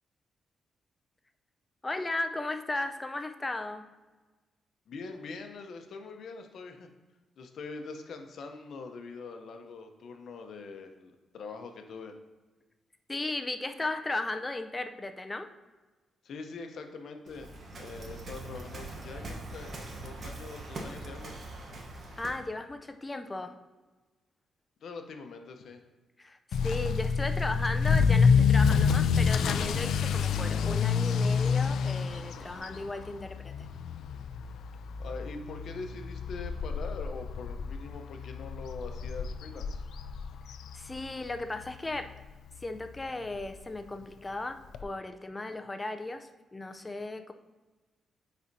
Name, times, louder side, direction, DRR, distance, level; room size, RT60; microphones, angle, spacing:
voice 1, 1.8-3.9 13.1-15.5 22.2-23.6 26.2-33.7 40.7-42.1 42.6-47.3, left 2 dB, 15° left, 7 dB, 0.4 m, -36 dB
voice 2, 4.9-6.9 7.4-12.1 16.2-17.5 17.8-19.7 20.0-21.3 24.8-25.8 35.0-39.9, left 4 dB, 60° left, 5 dB, 0.7 m, -43 dB
Waves surf, 17.3-22.5, right 2 dB, 45° right, 1.0 m, -42 dB
Motor vehicle (road) / Accelerating revving vroom, 26.5-41.4 41.7-42.1 42.6-42.7 43.0-43.1 43.3-43.4 44.7-44.8, left 6 dB, 80° left, 0.3 m, -28 dB
9.5 x 4.2 x 2.7 m, 1.3 s
cardioid pair, 140°, 0 cm